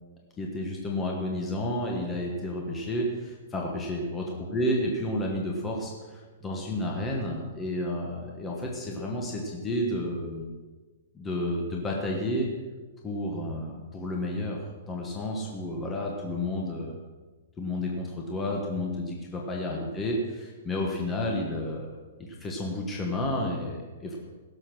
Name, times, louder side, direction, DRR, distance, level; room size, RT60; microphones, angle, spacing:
voice 1, 0.4-10.5 11.1-12.5 13.0-17.0 17.6-24.2, left 1 dB, 10° left, -1 dB, 1.4 m, -31 dB
16.5 x 7.0 x 6.2 m, 1.3 s
hypercardioid pair, 170°, 0 cm